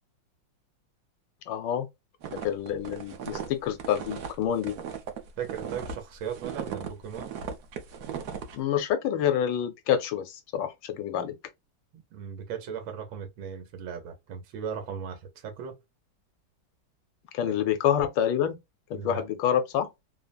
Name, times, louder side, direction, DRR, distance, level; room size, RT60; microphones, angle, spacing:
voice 1, 1.5-1.9 2.3-4.8 8.5-11.3 17.3-18.6 18.9-19.9, left 9 dB, 75° left, 1.3 m, -27 dB
sound 1, 2.2-6.0 6.3-8.6, right 7 dB, 65° right, 1.1 m, -37 dB
voice 2, 5.4-7.3 11.9-15.8 17.4-17.5 18.9-19.3, right 7 dB, 85° right, 1.5 m, -37 dB
3.4 x 2.0 x 2.2 m
omnidirectional pair, 2.1 m